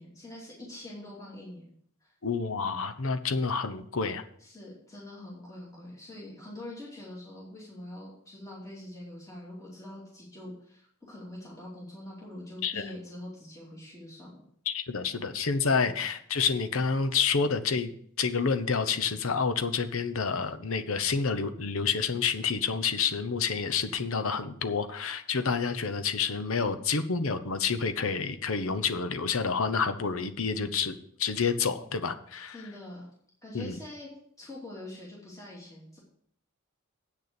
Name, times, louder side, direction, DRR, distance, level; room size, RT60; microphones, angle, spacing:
voice 1, 0.0-1.6 2.0-2.1 4.4-14.4 32.5-33.1 33.4-34.1 34.4-36.0, left 1 dB, 15° left, -6 dB, 2.8 m, -44 dB
voice 2, 2.2-4.2 12.6-12.8 14.7-17.9 18.2-32.5 33.5-33.8, left 5 dB, 65° left, 9 dB, 0.9 m, -29 dB
8.3 x 6.7 x 6.9 m, 0.64 s
head